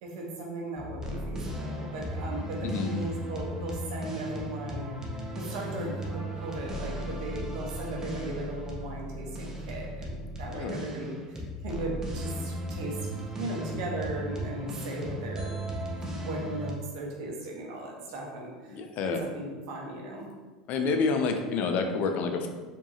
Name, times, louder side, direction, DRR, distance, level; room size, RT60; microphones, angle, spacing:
voice 1, 0.0-4.9 5.3-13.0 13.3-15.6 16.0-20.3, right 2 dB, 70° right, -1 dB, 1.0 m, -37 dB
sound 1, 0.7-16.7, right 1 dB, 15° right, 0.9 m, -36 dB
voice 2, 10.5-10.9 18.7-19.3 20.7-22.5, left 4 dB, 55° left, 5 dB, 0.5 m, -28 dB
4.6 x 2.9 x 2.8 m, 1.3 s
hypercardioid pair, 80°, 3 cm